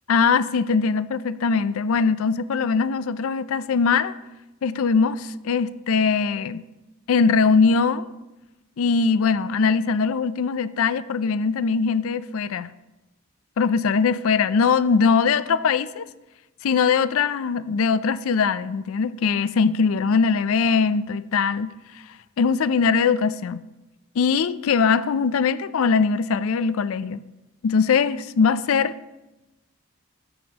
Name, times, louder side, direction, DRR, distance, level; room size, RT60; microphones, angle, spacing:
voice 1, 0.1-4.1 4.6-6.6 7.1-8.1 8.8-12.7 13.6-16.1 16.6-21.7 22.4-23.7 24.2-27.2 27.6-29.0, left 5 dB, 70° left, 0.4 m, -21 dB
13.5 x 7.3 x 2.9 m
head